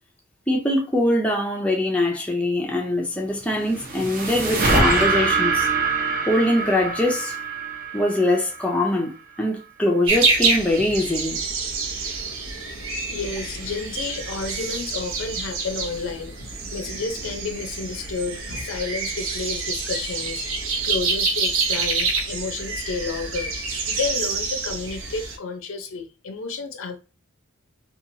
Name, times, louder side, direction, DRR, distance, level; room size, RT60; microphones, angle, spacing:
voice 1, 0.5-5.7 6.3-7.3 7.9-11.4, left 1 dB, 5° left, 0.4 m, -22 dB
sound 1, 3.4-8.8, right 3 dB, 45° right, 0.7 m, -24 dB
sound 2, 10.1-25.4, right 4 dB, 75° right, 0.7 m, -27 dB
voice 2, 13.1-23.5 23.9-27.0, left 4 dB, 75° left, 0.5 m, -31 dB
2.9 x 2.3 x 2.6 m
head